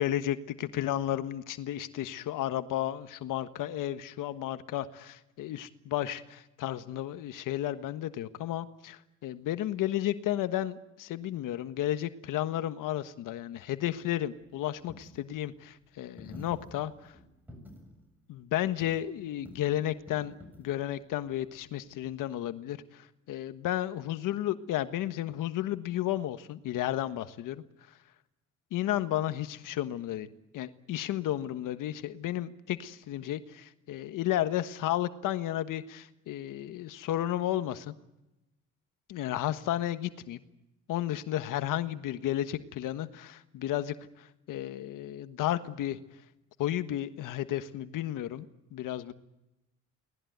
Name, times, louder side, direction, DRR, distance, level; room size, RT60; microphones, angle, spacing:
voice 1, 0.0-17.1 18.3-27.6 28.7-30.3 30.5-37.9 39.1-40.4 40.9-46.0 46.6-48.5 48.7-49.1, left 13 dB, 80° left, 11 dB, 1.4 m, -33 dB
Coin (dropping), 13.5-22.1, left 1 dB, 5° right, 7.6 m, -52 dB
24.0 x 19.0 x 9.4 m, 0.94 s
cardioid pair, 110°, 31 cm